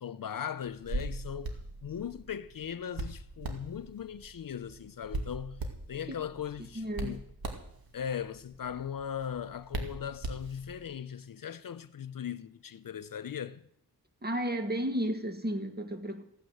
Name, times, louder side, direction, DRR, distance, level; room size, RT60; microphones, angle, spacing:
voice 1, 0.0-7.2 7.9-13.6, left 8 dB, 55° left, 0.6 m, -39 dB
Hands, 0.6-10.9, right 2 dB, 65° right, 2.3 m, -41 dB
voice 2, 6.7-7.2 14.2-16.2, equal, 25° right, 1.7 m, -33 dB
15.5 x 9.4 x 7.9 m
wide cardioid pair, 120°, 39 cm